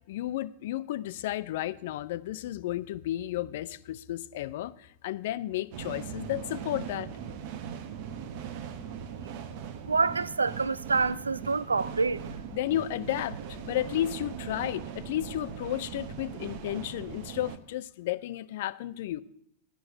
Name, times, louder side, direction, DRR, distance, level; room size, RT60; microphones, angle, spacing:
voice 1, 0.1-7.1 12.5-19.2, left 13 dB, 55° left, 0.5 m, -33 dB
sound 1, 5.7-17.6, right 7 dB, 50° right, 0.9 m, -40 dB
voice 2, 9.9-12.2, right 4 dB, 75° right, 0.4 m, -27 dB
10.5 x 6.1 x 8.1 m
figure-of-eight pair, 90°, 0 cm